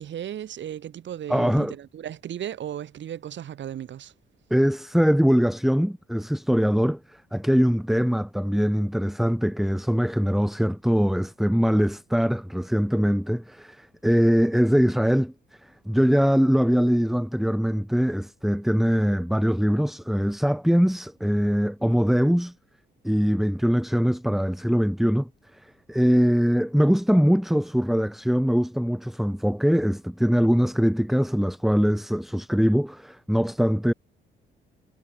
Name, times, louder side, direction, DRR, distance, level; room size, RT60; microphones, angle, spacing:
voice 1, 0.0-4.1, right 10 dB, 65° right, 7.8 m, -35 dB
voice 2, 1.3-1.7 4.5-15.3 15.6-22.5 23.0-33.9, equal, ahead, 5.1 m, -22 dB
cardioid pair, 90°, 20 cm